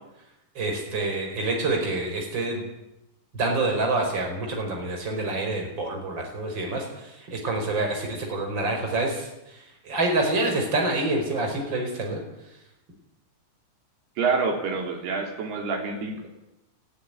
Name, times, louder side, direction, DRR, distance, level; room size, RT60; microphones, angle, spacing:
voice 1, 0.6-2.6 3.3-12.2, right 2 dB, 25° right, 2 dB, 5.2 m, -27 dB
voice 2, 14.2-16.3, right 4 dB, 60° right, 3 dB, 5.1 m, -27 dB
18.5 x 14.5 x 9.9 m, 0.91 s
omnidirectional pair, 5.3 m